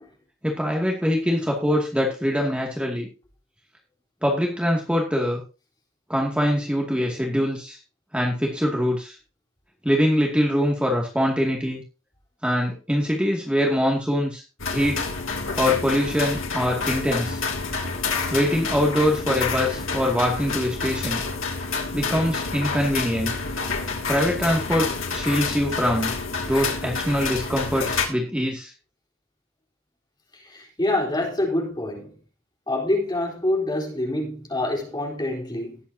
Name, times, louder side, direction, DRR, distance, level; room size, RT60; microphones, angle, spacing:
voice 1, 0.4-3.1 4.2-5.4 6.1-7.8 8.1-9.2 9.8-11.8 12.4-14.4 14.7-15.1 15.6-17.4 18.3-21.2 21.9-23.3 24.1-24.9 25.1-26.1 26.5-28.7, equal, 5° right, 2.3 m, -23 dB
sound 1, 14.6-28.1, left 4 dB, 70° left, 2.8 m, -28 dB
voice 2, 30.4-32.1 32.7-35.8, left 1 dB, 20° left, 3.9 m, -26 dB
19.5 x 8.6 x 2.8 m
head